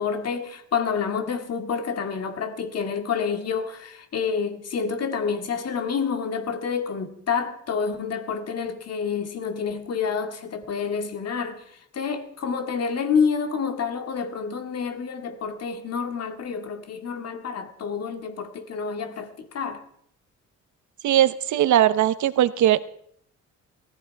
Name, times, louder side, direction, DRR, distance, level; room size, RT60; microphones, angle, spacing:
voice 1, 0.0-11.6 11.9-19.8, left 6 dB, 55° left, 2.4 m, -28 dB
voice 2, 21.0-22.8, right 12 dB, 70° right, 1.0 m, -19 dB
20.5 x 14.5 x 4.8 m
cardioid pair, 90°, 30 cm